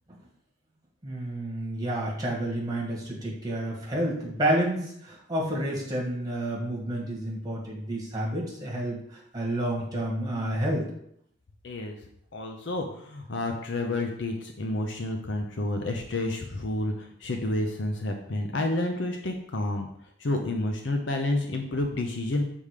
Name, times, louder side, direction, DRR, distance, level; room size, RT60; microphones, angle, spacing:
voice 1, 1.0-10.9, right 1 dB, 20° right, -3 dB, 1.7 m, -30 dB
voice 2, 11.6-11.9 12.3-19.9 20.2-22.4, left 2 dB, 60° left, 3 dB, 0.6 m, -30 dB
6.8 x 3.6 x 4.9 m, 0.73 s
head